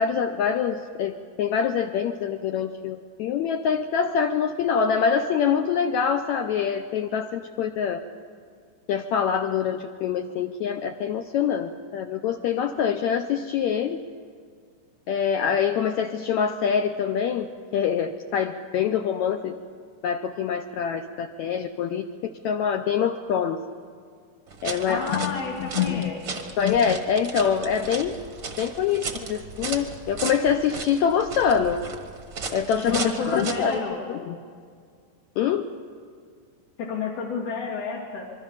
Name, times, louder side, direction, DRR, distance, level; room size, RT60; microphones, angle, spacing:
voice 1, 0.0-8.0 8.9-14.0 15.1-17.5 17.7-19.6 20.0-22.1 22.4-23.6 24.6-26.1 26.6-28.2 28.6-31.8 32.5-33.8 34.1-34.4 35.4-35.7, left 7 dB, 80° left, 6 dB, 1.7 m, -25 dB
sound 1, 24.5-33.8, right 4 dB, 60° right, 0.8 m, -36 dB
voice 2, 24.9-26.5 32.9-34.0 36.8-38.3, left 5 dB, 60° left, -5 dB, 3.6 m, -30 dB
26.0 x 23.0 x 5.7 m, 2.1 s
omnidirectional pair, 4.0 m